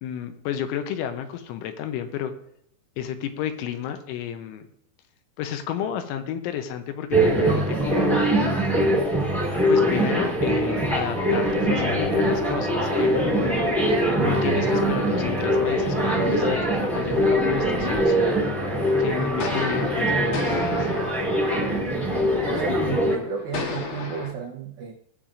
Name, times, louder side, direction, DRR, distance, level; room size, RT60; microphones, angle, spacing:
voice 1, 0.0-2.3 3.0-4.7 5.4-8.2 9.7-13.6 14.1-18.4 19.0-21.0, left 9 dB, 80° left, 8 dB, 3.1 m, -31 dB
sound 1, 7.1-23.1, equal, ahead, 0.6 m, -22 dB
sound 2, 19.3-24.3, left 4 dB, 65° left, 2.1 m, -35 dB
voice 2, 22.4-24.9, right 6 dB, 85° right, 0 dB, 2.0 m, -33 dB
19.5 x 7.3 x 2.5 m, 0.72 s
omnidirectional pair, 5.6 m